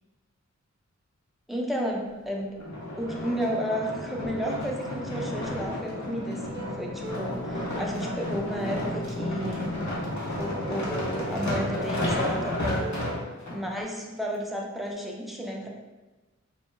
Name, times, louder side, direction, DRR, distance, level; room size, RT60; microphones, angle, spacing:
voice 1, 1.5-2.5 3.0-9.8 10.4-12.9 13.5-15.7, equal, ahead, -2 dB, 0.4 m, -32 dB
sound 1, 2.6-13.6 14.2-14.3, left 1 dB, 70° left, 0.7 m, -32 dB
sound 2, 5.6-13.3, right 1 dB, 40° right, 0.7 m, -42 dB
2.2 x 2.1 x 3.0 m, 1.2 s
wide cardioid pair, 60°, 29 cm